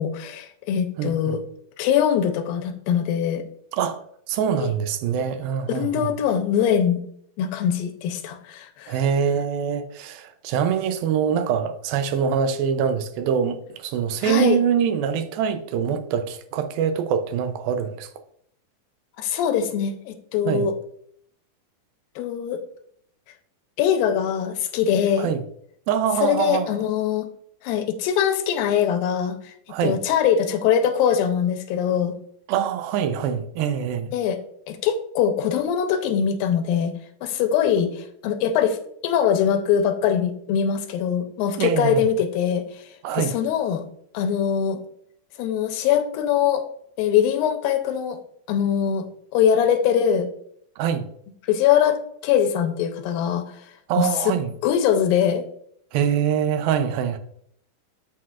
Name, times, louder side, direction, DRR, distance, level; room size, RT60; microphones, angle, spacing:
voice 1, 0.0-1.4 1.8-3.5 4.5-4.7 5.7-7.0 7.4-9.0 14.2-14.6 19.2-20.7 22.2-22.6 23.8-25.3 26.2-27.3 27.6-29.5 29.8-32.1 34.1-34.4 34.7-36.9 37.2-38.8 39.0-42.9 43.1-43.8 44.1-44.8 45.4-46.6 47.0-48.2 48.5-49.1 49.3-50.3 51.5-53.5 54.0-54.3 54.6-55.4, left 8 dB, 90° left, 2.5 m, -22 dB
voice 2, 1.0-1.4 3.8-4.0 4.3-6.1 8.9-18.1 20.5-20.7 25.2-25.4 25.9-26.7 29.7-30.0 32.5-34.1 41.6-42.1 43.0-43.3 50.8-51.0 53.9-54.5 55.9-57.2, right 8 dB, 85° right, 2.5 m, -24 dB
13.0 x 4.6 x 2.4 m
omnidirectional pair, 4.1 m